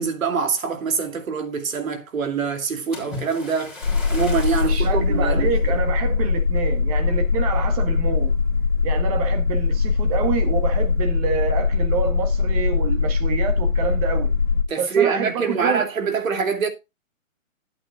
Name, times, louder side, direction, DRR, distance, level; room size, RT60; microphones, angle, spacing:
voice 1, 0.0-3.8 4.1-5.7 14.7-16.7, right 5 dB, 80° right, 2.7 m, -24 dB
Splash splatter, 2.9-5.0 5.6-5.8 6.4-6.5, left 2 dB, ahead, 3.3 m, -37 dB
sound 1, 3.8-14.6, left 5 dB, 75° left, 2.0 m, -21 dB
voice 2, 4.6-8.3 8.8-14.3 14.8-15.8, right 6 dB, 30° right, 1.5 m, -27 dB
11.5 x 8.7 x 2.4 m
hypercardioid pair, 160°, 40 cm